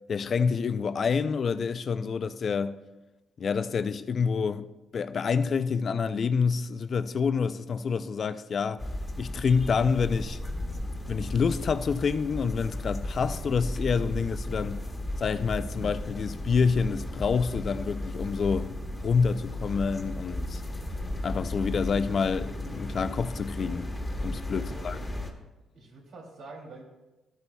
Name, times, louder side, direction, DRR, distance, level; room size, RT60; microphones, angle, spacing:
voice 1, 0.1-2.8 3.4-4.7 4.9-8.9 9.2-10.4 11.1-14.8 15.2-18.8 19.0-20.6 21.2-23.9 24.2-25.0, left 5 dB, 50° left, 0.4 m, -27 dB
sound 1, 8.8-25.3, left 1 dB, 20° left, 1.2 m, -35 dB
voice 2, 24.5-24.9 25.5-26.8, right 2 dB, 75° right, 2.8 m, -46 dB
13.0 x 8.2 x 2.3 m
cardioid pair, 90°, 0 cm